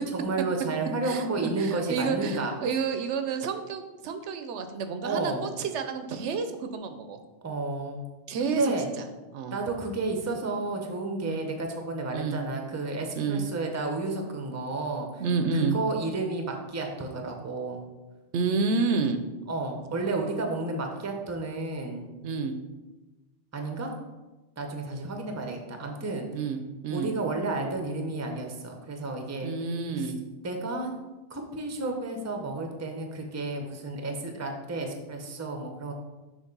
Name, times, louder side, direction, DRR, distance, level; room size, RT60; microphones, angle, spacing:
voice 1, 0.1-2.5 5.0-5.5 7.4-8.0 8.4-8.9 9.5-15.2 15.5-17.8 19.5-22.1 23.5-23.9 24.6-26.3 26.9-29.5 30.0-30.1 30.4-30.9 31.3-35.9, right 3 dB, 20° right, 3 dB, 0.6 m, -31 dB
voice 2, 1.0-7.2 8.3-8.7 9.3-9.6 11.3-11.5 12.1-12.4 13.2-13.5 15.2-15.8 18.3-19.2 22.2-22.6 26.3-27.1 29.4-30.2, right 4 dB, 80° right, 8 dB, 0.9 m, -29 dB
6.4 x 3.1 x 5.3 m, 1.1 s
omnidirectional pair, 1.2 m